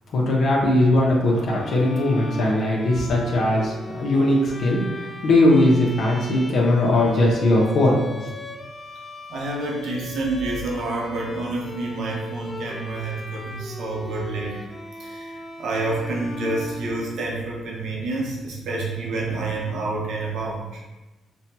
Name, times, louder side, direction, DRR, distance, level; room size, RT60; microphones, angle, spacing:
voice 1, 0.1-8.0, left 1 dB, 65° left, -3 dB, 0.8 m, -19 dB
Bowed string instrument, 1.4-17.5, left 1 dB, 15° left, 0.5 m, -38 dB
voice 2, 9.3-14.6 15.0-20.8, right 2 dB, 70° right, -2 dB, 0.9 m, -28 dB
5.4 x 2.3 x 2.8 m, 1.1 s
cardioid pair, 90°, 0 cm